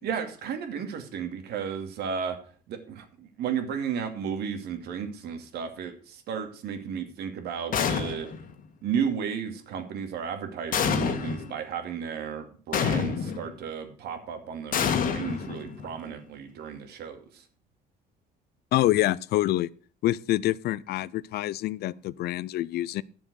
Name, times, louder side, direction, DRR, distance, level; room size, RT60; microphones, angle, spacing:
voice 1, 0.0-2.4 2.7-8.3 8.8-17.2, right 7 dB, 75° right, 2.4 m, -33 dB
sound 1, 7.7-8.5 10.7-11.5 12.7-13.5 14.7-15.9, left 6 dB, 55° left, 1.7 m, -27 dB
voice 2, 18.7-19.7 20.0-23.0, left 15 dB, 70° left, 0.5 m, -26 dB
11.5 x 7.2 x 6.4 m
cardioid pair, 110°, 17 cm